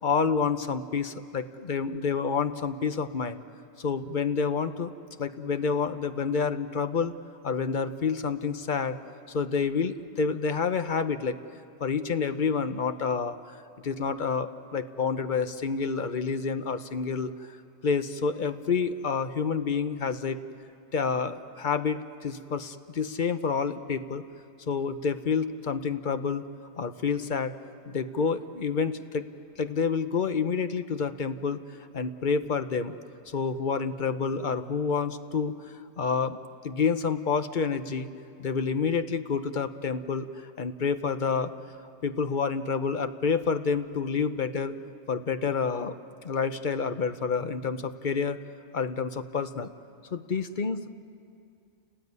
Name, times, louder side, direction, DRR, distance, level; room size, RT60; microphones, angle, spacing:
voice 1, 0.0-3.4 3.8-4.9 5.2-7.1 7.4-9.0 9.3-11.4 11.8-13.4 13.8-17.3 17.8-20.4 20.9-24.2 24.7-26.4 26.8-27.5 27.9-29.2 29.6-31.6 31.9-33.0 33.3-36.4 36.6-38.1 38.4-41.5 42.0-44.7 45.1-46.0 46.2-48.4 48.7-49.7 50.1-50.9, left 5 dB, 40° left, 10 dB, 0.9 m, -28 dB
29.0 x 19.0 x 9.6 m, 2.4 s
omnidirectional pair, 1.4 m